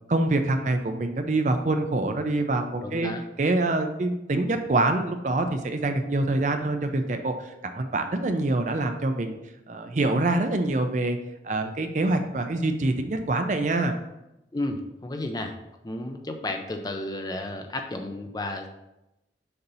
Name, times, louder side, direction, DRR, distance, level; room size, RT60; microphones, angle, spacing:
voice 1, 0.1-3.1 3.4-9.4 9.7-11.2 11.4-14.0, right 2 dB, 40° right, 7 dB, 0.5 m, -25 dB
voice 2, 2.8-3.2 14.5-15.5 15.8-18.7, left 2 dB, 20° left, 5 dB, 0.5 m, -32 dB
6.6 x 2.8 x 5.5 m, 0.90 s
head